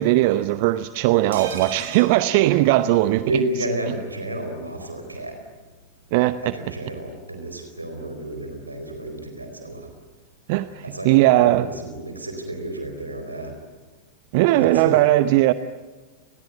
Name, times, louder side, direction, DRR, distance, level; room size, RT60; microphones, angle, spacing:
voice 1, 0.0-3.3 6.1-6.4 10.5-11.7 14.3-15.5, right 16 dB, 50° right, 14 dB, 0.8 m, -18 dB
sound 1, 1.3-3.3 3.6-3.7 3.9-4.1, right 7 dB, 65° right, 5.9 m, -38 dB
voice 2, 3.2-5.4 6.4-9.9 10.8-13.5 14.5-15.0, right 1 dB, 80° right, 5 dB, 4.4 m, -31 dB
30.0 x 21.5 x 9.3 m, 1.3 s
figure-of-eight pair, 90°, 0 cm